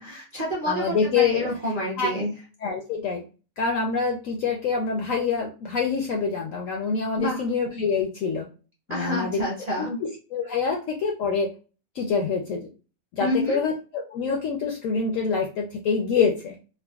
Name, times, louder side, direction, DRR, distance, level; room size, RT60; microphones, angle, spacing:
voice 1, 0.0-2.3 7.2-7.4 8.9-10.0 13.2-13.6, equal, 40° right, -5 dB, 0.6 m, -28 dB
voice 2, 0.7-1.5 2.0-2.1 2.6-3.2 3.6-8.5 8.9-9.4 9.8-11.5 12.0-12.6 13.2-16.5, left 5 dB, 70° left, 0 dB, 0.8 m, -26 dB
3.7 x 2.0 x 2.3 m, 0.34 s
omnidirectional pair, 1.8 m